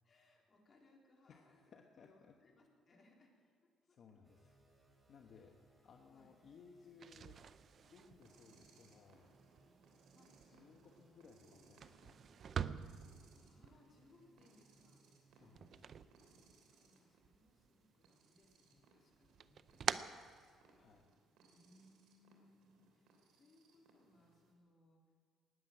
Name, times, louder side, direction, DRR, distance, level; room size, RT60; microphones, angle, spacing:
voice 1, 0.0-1.6 2.0-3.3 6.1-6.3 10.1-10.4 13.3-15.1 16.1-16.4 16.7-20.4 21.5-25.0, left 2 dB, 35° left, -1 dB, 3.5 m, -69 dB
voice 2, 1.3-2.4 3.8-4.6 4.9-7.4 7.9-9.3 10.4-12.2 15.3-16.0 20.8-21.0, left 5 dB, 50° left, 3 dB, 1.1 m, -62 dB
sound 1, 4.2-20.5, right 2 dB, 20° right, 5.0 m, -73 dB
sound 2, 6.9-16.9 17.2-18.1 18.4-21.1, right 7 dB, 50° right, 0.5 m, -47 dB
sound 3, 7.9-24.5, right 3 dB, 85° right, 3.0 m, -70 dB
19.0 x 7.7 x 8.8 m, 2.1 s
cardioid pair, 105°, 0 cm